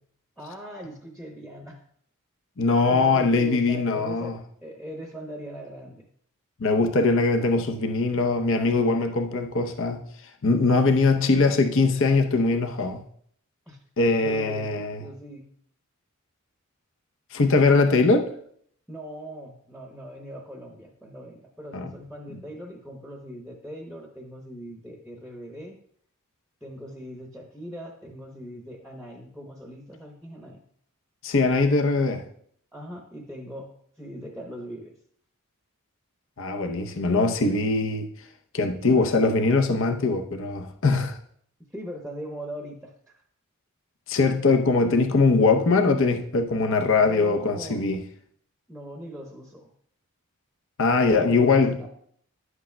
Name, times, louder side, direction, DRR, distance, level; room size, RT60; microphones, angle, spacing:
voice 1, 0.4-1.8 2.6-6.1 13.7-13.8 14.2-15.5 18.9-25.8 26.6-30.6 32.7-34.9 41.7-42.9 47.0-47.8 48.7-49.7 51.0-51.9, equal, ahead, 1 dB, 0.8 m, -40 dB
voice 2, 2.6-4.4 6.6-10.0 10.4-13.0 14.0-15.0 17.3-18.3 21.7-21.9 22.3-22.4 31.2-32.2 36.4-38.1 38.5-41.2 44.1-48.0 50.8-51.8, left 3 dB, 65° left, 5 dB, 0.7 m, -21 dB
11.0 x 8.1 x 2.2 m, 0.64 s
head